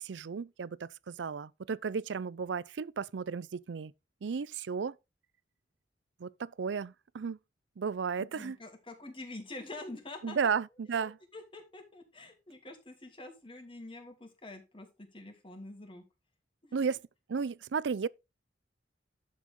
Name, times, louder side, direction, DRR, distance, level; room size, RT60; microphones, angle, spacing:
voice 1, 0.0-3.9 4.2-5.0 6.2-7.4 7.8-8.6 10.2-11.2 16.7-17.0 17.3-18.1, right 6 dB, 80° right, 0.4 m, -34 dB
voice 2, 8.2-10.4 11.0-16.0 16.6-16.7, left 2 dB, 30° left, 2.9 m, -46 dB
11.5 x 7.6 x 3.7 m
head